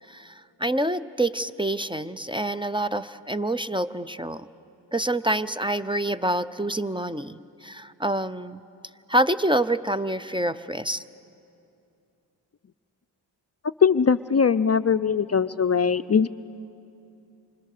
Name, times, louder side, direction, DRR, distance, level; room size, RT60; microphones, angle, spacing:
voice 1, 0.1-4.5 4.9-8.6 9.1-11.0, right 1 dB, 10° right, 13 dB, 0.6 m, -27 dB
voice 2, 13.8-16.3, left 6 dB, 35° left, 12 dB, 0.5 m, -21 dB
28.0 x 25.5 x 6.7 m, 2.7 s
cardioid pair, 40°, 45 cm